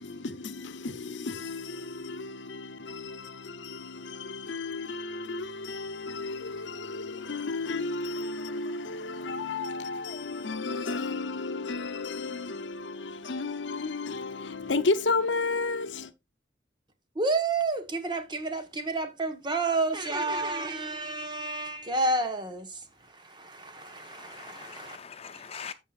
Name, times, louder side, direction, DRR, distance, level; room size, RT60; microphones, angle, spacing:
voice 1, 0.0-16.1, left 3 dB, 90° left, 0.8 m, -33 dB
voice 2, 17.1-25.0, right 3 dB, 25° right, 1.2 m, -30 dB
voice 3, 23.6-25.7, left 6 dB, 35° left, 0.5 m, -44 dB
13.5 x 5.7 x 2.5 m
head